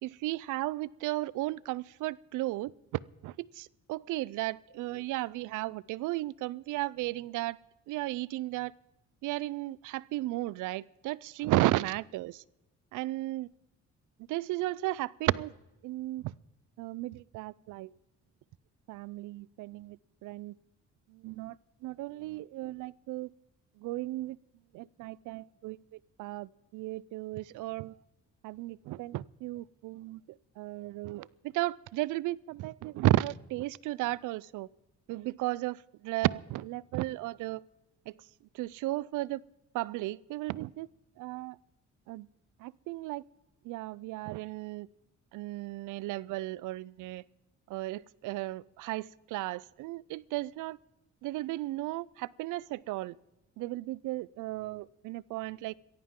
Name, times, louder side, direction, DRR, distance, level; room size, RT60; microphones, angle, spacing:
voice 1, 0.0-7.6 7.9-8.7 9.2-12.4 12.9-13.5 14.3-15.5 15.8-16.3 16.8-17.9 18.9-20.5 21.1-21.6 21.8-23.3 23.8-24.4 24.7-28.0 28.4-34.7 35.1-35.8 36.0-37.6 38.1-38.2 38.5-39.4 39.7-40.9 41.2-41.6 42.1-42.3 42.6-43.2 43.6-44.9 45.3-47.2 47.7-50.8 51.2-53.2 53.6-55.7, right 17 dB, 85° right, 24 dB, 0.5 m, -34 dB
17.5 x 15.0 x 3.7 m, 0.95 s
cardioid pair, 90°, 30 cm